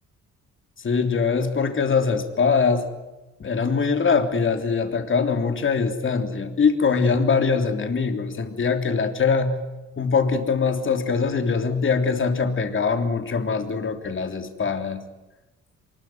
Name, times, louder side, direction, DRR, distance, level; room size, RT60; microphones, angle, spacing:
voice 1, 0.8-2.9 3.4-9.6 10.0-15.0, left 5 dB, 40° left, 6 dB, 3.3 m, -22 dB
24.5 x 21.5 x 9.4 m, 1.0 s
cardioid pair, 90°, 30 cm